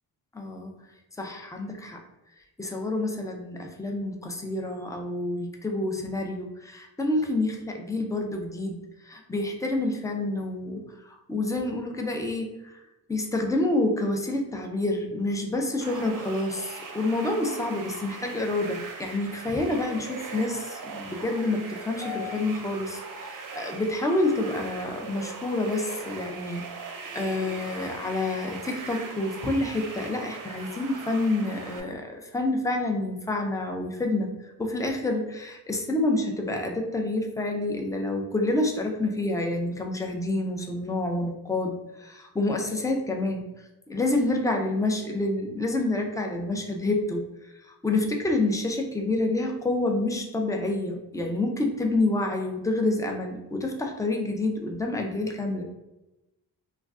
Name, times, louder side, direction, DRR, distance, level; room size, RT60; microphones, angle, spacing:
voice 1, 0.3-0.7 1.2-2.0 2.6-8.8 9.0-12.8 13.1-43.4 43.9-47.2 47.8-55.6, left 2 dB, 10° left, 2 dB, 0.5 m, -28 dB
sound 1, 15.8-31.8, right 4 dB, 50° right, 0.6 m, -40 dB
2.3 x 2.2 x 3.5 m, 0.98 s
cardioid pair, 60°, 43 cm